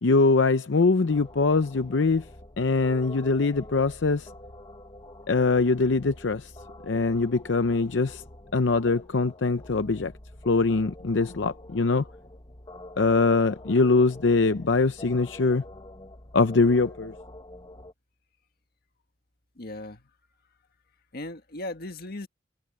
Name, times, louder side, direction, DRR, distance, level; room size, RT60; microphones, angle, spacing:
voice 1, 0.0-2.3 2.6-4.3 5.3-6.5 6.8-8.2 8.5-10.1 10.5-12.1 13.0-15.6 16.3-17.1, left 3 dB, 80° left, 0.7 m, -23 dB
sound 1, 1.1-17.9, left 1 dB, 25° left, 1.3 m, -46 dB
voice 2, 19.6-20.0 21.1-22.3, left 2 dB, 55° left, 1.8 m, -37 dB
head